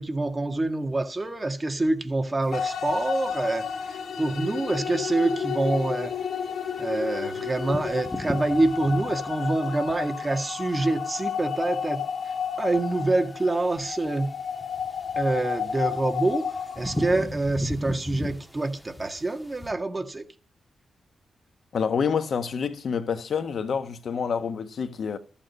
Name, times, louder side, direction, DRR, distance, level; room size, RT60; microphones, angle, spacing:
voice 1, 0.0-3.7 4.2-6.2 6.8-14.3 15.2-16.4 16.8-20.2, right 2 dB, 20° right, 1.9 m, -26 dB
sound 1, 2.4-19.7, left 1 dB, 10° left, 1.8 m, -40 dB
sound 2, 2.5-17.3, left 7 dB, 75° left, 2.4 m, -32 dB
voice 2, 21.7-25.2, left 6 dB, 60° left, 1.3 m, -27 dB
14.0 x 8.9 x 5.4 m
wide cardioid pair, 140°, 0 cm